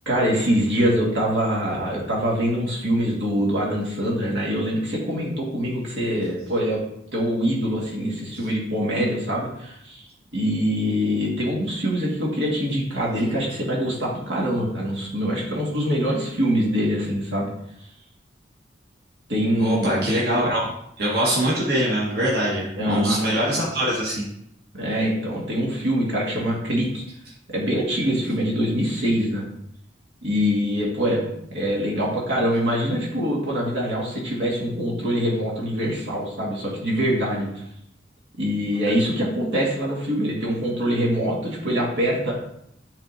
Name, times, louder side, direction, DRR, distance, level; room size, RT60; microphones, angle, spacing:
voice 1, 0.1-6.8 7.1-17.5 19.3-20.0 22.8-23.6 24.7-27.0 27.5-29.4 30.2-37.6 38.4-42.3, equal, 75° right, -4 dB, 1.9 m, -24 dB
voice 2, 19.6-20.7 21.0-24.2, equal, 55° right, -6 dB, 1.6 m, -23 dB
11.0 x 3.7 x 2.7 m, 0.75 s
head